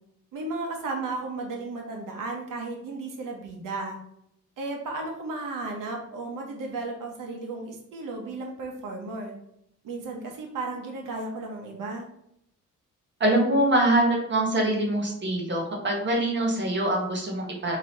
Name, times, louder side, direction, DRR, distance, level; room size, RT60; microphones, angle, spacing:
voice 1, 0.3-4.0 4.6-9.3 9.8-12.1, right 3 dB, 80° right, 1 dB, 1.0 m, -34 dB
voice 2, 13.2-17.8, right 1 dB, 35° right, 0 dB, 1.2 m, -24 dB
5.0 x 2.9 x 2.9 m, 0.76 s
cardioid pair, 145°, 32 cm